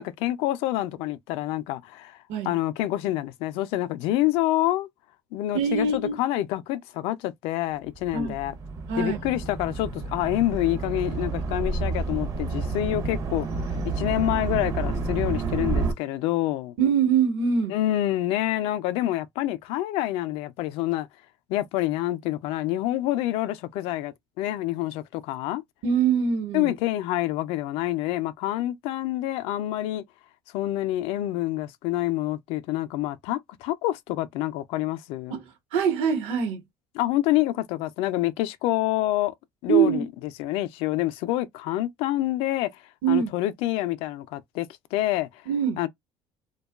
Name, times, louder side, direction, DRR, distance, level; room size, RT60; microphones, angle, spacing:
voice 1, 0.0-2.2 2.4-4.9 5.3-8.5 9.0-16.8 17.7-21.1 21.5-25.6 26.5-30.0 30.5-35.4 37.0-39.3 39.6-40.1 40.4-42.7 43.1-45.3 45.8-45.9, left 15 dB, 75° left, 0.4 m, -27 dB
voice 2, 5.5-6.2 8.1-8.3 8.9-9.2 16.8-17.7 25.8-26.7 35.3-36.6 39.7-40.0 43.0-43.3 45.5-45.8, right 6 dB, 75° right, 1.0 m, -23 dB
sound 1, 7.9-15.9, right 4 dB, 40° right, 0.6 m, -30 dB
2.8 x 2.2 x 2.2 m
cardioid pair, 150°, 10 cm